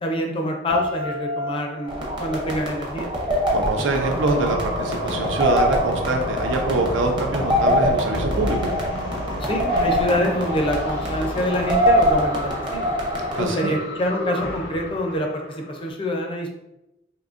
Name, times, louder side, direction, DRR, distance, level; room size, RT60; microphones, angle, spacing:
voice 1, 0.0-3.1 9.4-12.9 13.4-16.5, equal, 30° left, 2 dB, 0.4 m, -26 dB
sound 1, 0.7-3.7, left 2 dB, 45° right, 1.0 m, -32 dB
sound 2, 1.9-13.4, equal, 25° right, 0.7 m, -24 dB
voice 2, 3.5-8.7 13.3-13.8, right 3 dB, 80° right, 3 dB, 0.5 m, -24 dB
sound 3, 3.9-15.9, equal, 75° left, 0.7 m, -31 dB
3.7 x 2.6 x 2.5 m, 0.91 s
head